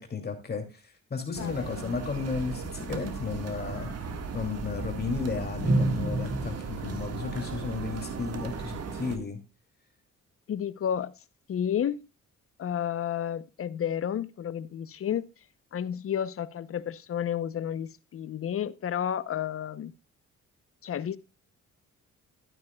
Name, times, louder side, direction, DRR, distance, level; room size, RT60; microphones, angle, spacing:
voice 1, 0.0-9.4, left 5 dB, 35° left, 2.5 m, -34 dB
voice 2, 1.4-1.9 10.5-11.1 11.5-12.1 12.6-15.3 15.7-19.9 20.8-21.2, left 9 dB, 50° left, 0.7 m, -31 dB
sound 1, 1.4-9.2, right 3 dB, 55° right, 1.6 m, -33 dB
12.5 x 9.3 x 2.2 m
cardioid pair, 90°, 30 cm